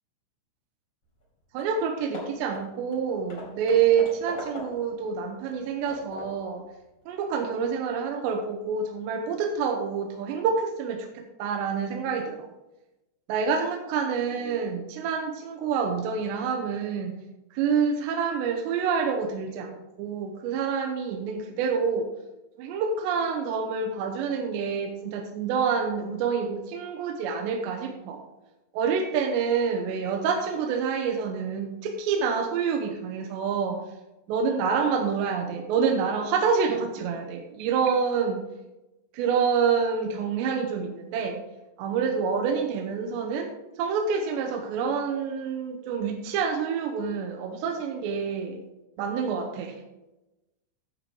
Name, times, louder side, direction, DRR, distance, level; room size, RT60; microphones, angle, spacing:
Hammer / Wood, 1.2-1.3 1.6-1.8 2.1-5.0 5.5-6.5, left 2 dB, 30° left, 2.5 m, -41 dB
voice 1, 1.5-6.6 7.1-12.5 13.3-17.2 17.5-22.1 22.6-28.2 28.7-33.8 34.3-38.4 39.1-41.4 41.8-43.5 43.8-48.6 49.0-49.8, right 6 dB, 80° right, 4 dB, 2.9 m, -27 dB
9.8 x 7.4 x 4.6 m, 0.99 s
omnidirectional pair, 5.3 m